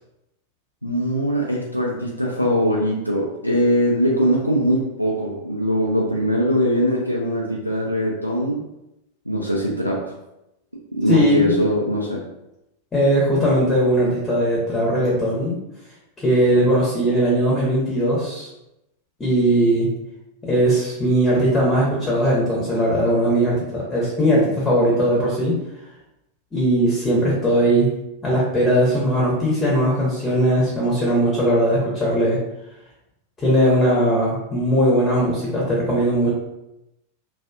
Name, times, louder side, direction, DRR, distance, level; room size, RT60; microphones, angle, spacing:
voice 1, 0.8-8.6 9.3-10.1 10.9-12.2, equal, 90° left, -3 dB, 0.3 m, -21 dB
voice 2, 11.1-11.6 12.9-15.6 16.2-18.5 19.2-19.9 20.4-25.6 26.5-27.9 28.2-32.4 33.4-36.3, equal, 15° left, -5 dB, 0.8 m, -19 dB
2.4 x 2.3 x 2.3 m, 0.89 s
figure-of-eight pair, 90°, 0 cm